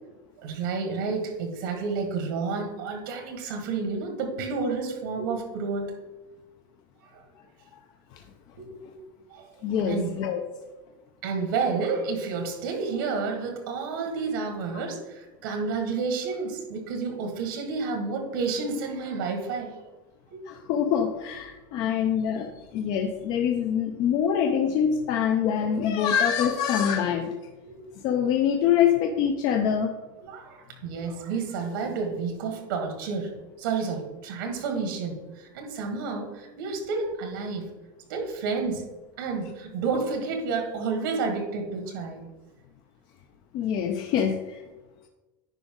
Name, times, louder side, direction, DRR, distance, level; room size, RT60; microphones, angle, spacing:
voice 1, 0.4-5.9 7.0-7.2 8.6-9.0 9.3-9.5 9.9-10.1 11.2-19.8 20.3-20.4 27.7-27.9 30.2-33.3 33.6-37.7 38.1-38.9 39.2-42.2, right 4 dB, 75° right, 4 dB, 1.7 m, -30 dB
voice 2, 9.6-10.4 20.5-27.4 28.0-29.9 43.5-44.6, left 8 dB, 40° left, 5 dB, 0.6 m, -25 dB
10.0 x 5.1 x 3.7 m, 1.1 s
supercardioid pair, 160°, 11 cm